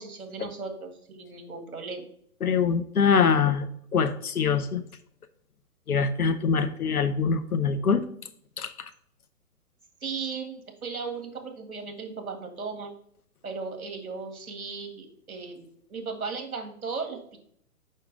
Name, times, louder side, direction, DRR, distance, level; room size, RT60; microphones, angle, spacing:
voice 1, 0.0-2.0 10.0-12.9 13.4-17.4, right 4 dB, 65° right, 4 dB, 2.0 m, -36 dB
voice 2, 2.4-3.7 3.9-4.8 5.9-8.0 8.6-8.7, left 6 dB, 75° left, 10 dB, 1.0 m, -23 dB
6.6 x 5.7 x 3.3 m, 0.64 s
figure-of-eight pair, 130°, 45 cm